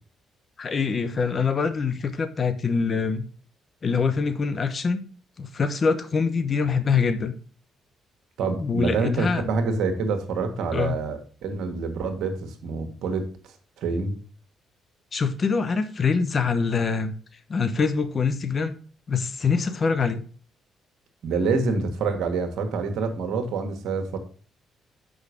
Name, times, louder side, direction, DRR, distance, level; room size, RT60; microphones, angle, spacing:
voice 1, 0.6-3.3 3.8-5.1 5.4-7.3 8.6-9.4 10.7-11.0 15.1-17.1 17.5-18.8 19.1-20.2, left 5 dB, 45° left, 1.0 m, -24 dB
voice 2, 8.4-14.1 21.2-24.2, right 4 dB, 75° right, 1.4 m, -27 dB
6.4 x 5.1 x 4.9 m
supercardioid pair, 65°, 0 cm